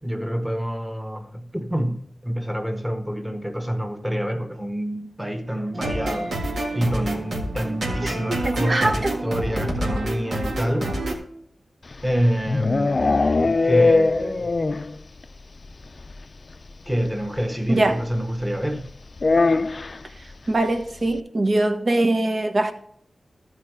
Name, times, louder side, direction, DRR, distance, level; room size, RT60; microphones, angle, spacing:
voice 1, 0.0-6.4 6.7-11.0 12.0-14.7 16.8-18.9, equal, 5° right, 1.5 m, -27 dB
sound 1, 5.7-11.1, right 1 dB, 85° right, 1.9 m, -28 dB
voice 2, 8.3-9.1 17.7-18.0 20.2-22.7, right 2 dB, 55° right, 1.3 m, -22 dB
sound 2, 11.9-15.0 15.2-15.3 15.6-15.7 16.0-16.1 17.4-17.5 19.2-20.0, left 3 dB, 50° left, 0.4 m, -20 dB
13.5 x 4.7 x 4.9 m
cardioid pair, 60°, 0 cm